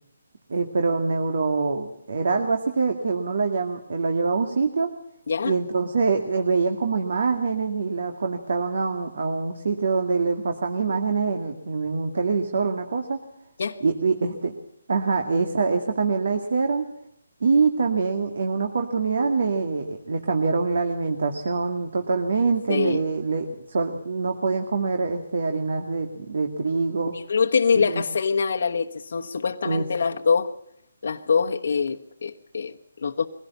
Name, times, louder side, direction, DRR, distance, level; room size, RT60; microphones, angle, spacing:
voice 1, 0.5-4.9 5.4-13.2 13.8-14.5 14.9-16.9 17.4-27.1 27.7-28.0 29.6-29.8, right 4 dB, 60° right, 2.2 m, -24 dB
voice 2, 22.7-23.0 27.1-30.5 31.0-33.3, left 5 dB, 60° left, 1.1 m, -24 dB
22.5 x 16.5 x 7.2 m
hypercardioid pair, 165°, 0 cm